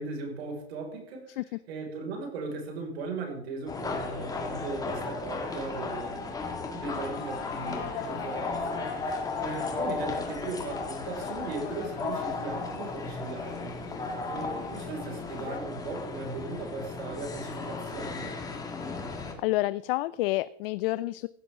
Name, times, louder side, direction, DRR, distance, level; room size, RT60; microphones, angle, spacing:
voice 1, 0.0-1.4 1.7-6.5 6.7-8.8 9.4-13.8 14.3-18.4, right 3 dB, 70° right, 2 dB, 5.2 m, -38 dB
sound 1, 3.7-19.3, left 3 dB, 10° left, 1.9 m, -35 dB
sound 2, 6.9-15.6, left 7 dB, 80° left, 2.7 m, -41 dB
voice 2, 19.4-21.3, left 18 dB, 60° left, 18 dB, 0.5 m, -28 dB
16.0 x 12.5 x 3.6 m, 0.73 s
supercardioid pair, 150°, 32 cm